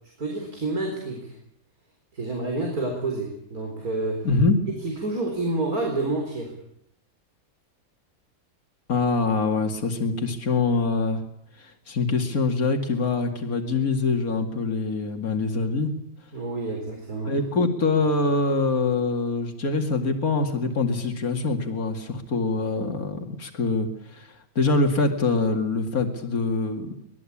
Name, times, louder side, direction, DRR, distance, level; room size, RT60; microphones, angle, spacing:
voice 1, 0.2-1.4 2.1-4.3 4.7-6.5 16.3-17.4, right 2 dB, 90° right, 1 dB, 5.0 m, -29 dB
voice 2, 4.2-4.6 8.9-11.2 11.6-15.9 17.3-26.9, left 3 dB, 80° left, 4 dB, 2.8 m, -24 dB
24.5 x 20.5 x 8.7 m, 0.70 s
omnidirectional pair, 1.5 m